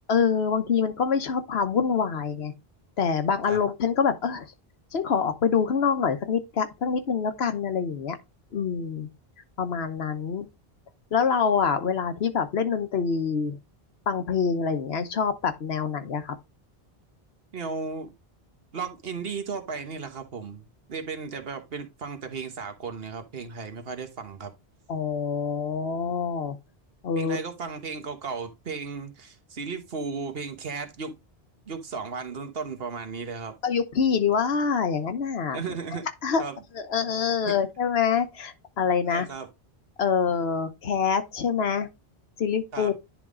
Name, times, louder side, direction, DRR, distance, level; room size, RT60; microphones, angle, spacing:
voice 1, 0.1-2.5 3.0-4.5 4.9-8.2 8.5-9.1 9.6-10.5 11.1-13.6 14.1-16.3 24.9-26.6 27.0-27.4 33.6-35.6 36.2-36.4 36.7-39.3 40.0-41.9 42.4-43.0, left 6 dB, 80° left, 1.2 m, -25 dB
voice 2, 17.5-18.1 18.7-24.5 27.2-31.1 31.7-33.6 35.5-36.1 36.4-36.6 37.4-37.6 39.0-39.5 42.7-42.9, right 5 dB, 70° right, 1.3 m, -35 dB
10.5 x 3.6 x 3.7 m
omnidirectional pair, 1.0 m